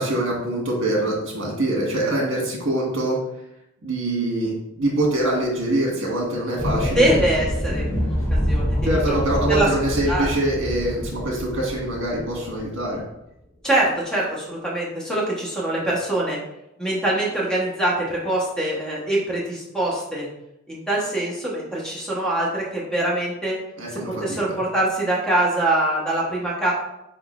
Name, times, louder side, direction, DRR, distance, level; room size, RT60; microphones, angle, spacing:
voice 1, 0.0-3.2 3.8-7.2 8.8-13.0 23.8-24.6, right 1 dB, 65° right, -2 dB, 1.4 m, -24 dB
sound 1, 6.6-12.7, equal, 35° left, 1.2 m, -26 dB
voice 2, 6.9-9.1 9.5-9.7 10.1-10.3 13.6-16.4 16.8-20.3 20.7-23.6 23.9-26.7, right 1 dB, 5° left, -5 dB, 1.0 m, -24 dB
4.3 x 3.7 x 2.4 m, 0.84 s
head